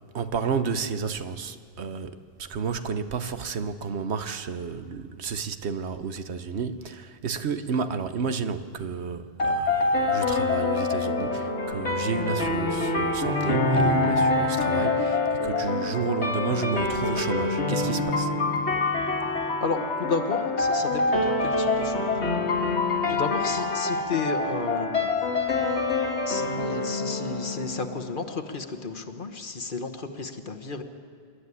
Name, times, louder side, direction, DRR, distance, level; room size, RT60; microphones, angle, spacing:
voice 1, 0.1-18.3, right 5 dB, 75° right, 1.2 m, -31 dB
sound 1, 9.4-28.3, left 3 dB, 80° left, 2.3 m, -26 dB
voice 2, 19.4-22.2 23.1-25.1 26.3-30.8, left 4 dB, 50° left, 1.4 m, -32 dB
27.0 x 11.5 x 9.7 m
omnidirectional pair, 1.1 m